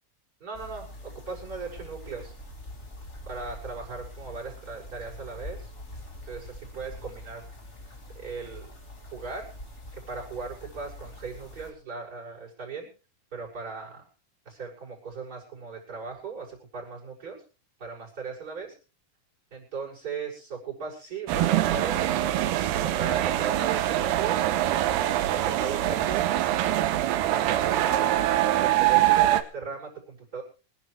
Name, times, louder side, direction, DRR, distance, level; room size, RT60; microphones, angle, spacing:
voice 1, 0.4-2.3 3.3-5.7 6.2-7.4 8.2-8.7 9.1-9.5 10.1-12.9 13.3-14.0 14.5-17.4 17.8-18.7 19.5-22.2 22.8-24.5 25.3-26.3 27.3-30.4, right 5 dB, 25° right, -6 dB, 7.2 m, -38 dB
sound 1, 0.5-11.7, left 1 dB, 20° left, 2.5 m, -44 dB
sound 2, 21.3-29.4, right 13 dB, 90° right, 2.9 m, -24 dB
26.0 x 11.0 x 3.4 m, 0.36 s
omnidirectional pair, 4.4 m